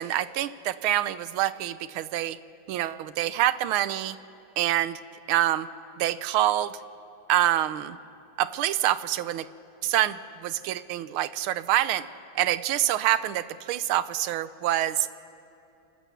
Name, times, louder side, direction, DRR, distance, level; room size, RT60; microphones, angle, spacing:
voice 1, 0.0-2.4 2.7-4.2 4.6-5.0 5.3-5.7 6.0-6.7 7.3-8.0 8.4-9.5 9.8-12.1 12.3-15.1, right 13 dB, 85° right, 15 dB, 1.5 m, -26 dB
29.0 x 13.5 x 6.8 m, 2.7 s
omnidirectional pair, 2.3 m